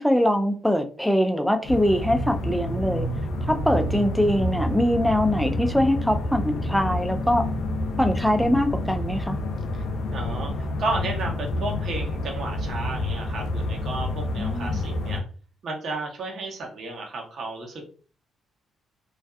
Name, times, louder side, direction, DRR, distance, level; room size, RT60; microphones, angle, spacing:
voice 1, 0.0-3.1 3.5-7.5 8.0-9.4 14.4-14.8, equal, ahead, 0.4 m, -23 dB
sound 1, 1.6-15.2, left 1 dB, 75° left, 0.5 m, -28 dB
voice 2, 10.1-15.2 15.6-17.9, right 2 dB, 60° right, 0.8 m, -33 dB
2.5 x 2.3 x 2.3 m
cardioid pair, 90°, 0 cm